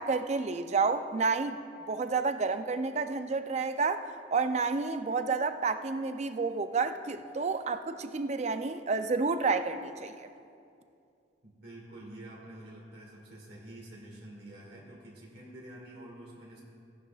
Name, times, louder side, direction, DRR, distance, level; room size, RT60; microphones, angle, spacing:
voice 1, 0.0-1.6 1.9-4.1 4.3-10.3, right 4 dB, 40° right, 9 dB, 0.5 m, -30 dB
voice 2, 11.4-16.6, right 1 dB, 65° right, -4 dB, 2.0 m, -48 dB
17.0 x 11.0 x 2.4 m, 2.5 s
head